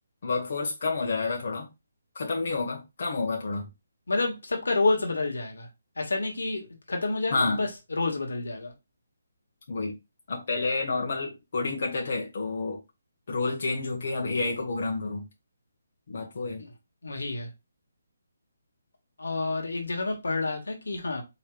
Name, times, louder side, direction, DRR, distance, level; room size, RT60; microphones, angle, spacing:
voice 1, 0.2-1.7 2.1-3.7 7.3-7.6 9.7-9.9 10.3-12.8 13.3-15.3 16.1-16.6, left 3 dB, 55° left, 1.2 m, -29 dB
voice 2, 4.1-5.7 6.0-8.7 16.6-16.7 17.0-17.5 19.2-21.2, left 3 dB, 85° left, 1.4 m, -29 dB
4.6 x 3.2 x 2.2 m
hypercardioid pair, 155°, 0 cm